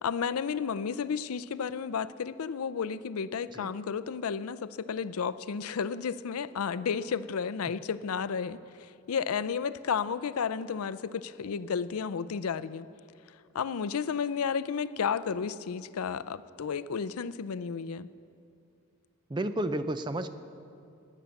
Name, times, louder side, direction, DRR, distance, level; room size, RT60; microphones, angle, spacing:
voice 1, 0.0-12.9 13.5-18.1, left 6 dB, 90° left, 15 dB, 0.5 m, -32 dB
voice 2, 19.3-20.3, right 1 dB, 20° right, 11 dB, 0.5 m, -31 dB
17.0 x 10.0 x 7.0 m, 2.5 s
head